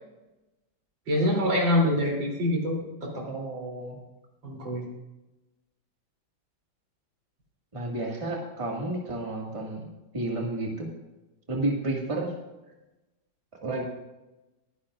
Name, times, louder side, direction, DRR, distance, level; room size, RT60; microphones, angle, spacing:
voice 1, 1.1-3.2 4.4-4.8, left 1 dB, 75° right, -1 dB, 4.0 m, -25 dB
voice 2, 3.3-4.0 7.7-10.9 11.5-12.3 13.6-13.8, right 2 dB, 15° right, -1 dB, 1.9 m, -31 dB
22.5 x 10.0 x 2.5 m, 1.0 s
omnidirectional pair, 2.1 m